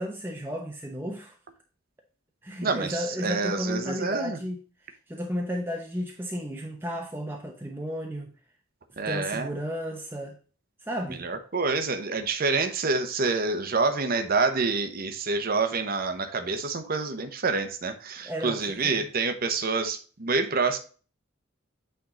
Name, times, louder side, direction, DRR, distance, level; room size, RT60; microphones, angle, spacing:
voice 1, 0.0-1.4 2.4-8.3 9.1-10.4 10.8-11.2 18.2-19.1, equal, 10° right, 0.8 m, -33 dB
voice 2, 2.6-3.0 3.2-4.4 9.0-9.5 11.2-20.8, right 4 dB, 50° right, 0.9 m, -27 dB
8.8 x 3.6 x 3.8 m
head